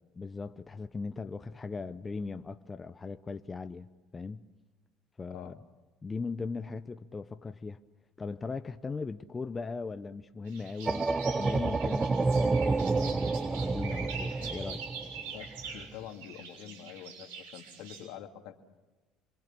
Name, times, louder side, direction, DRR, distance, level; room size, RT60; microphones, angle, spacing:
voice 1, 0.2-3.9 4.1-4.5 5.2-5.5 6.0-7.8 8.2-11.1 11.3-14.8, left 4 dB, 25° left, 0.9 m, -38 dB
voice 2, 5.3-5.6 15.2-18.6, left 10 dB, 70° left, 2.4 m, -46 dB
sound 1, 10.5-18.0, right 6 dB, 85° right, 7.2 m, -44 dB
sound 2, 10.9-15.8, right 3 dB, 25° right, 0.8 m, -29 dB
27.5 x 24.0 x 7.3 m
hypercardioid pair, 70°, 0 cm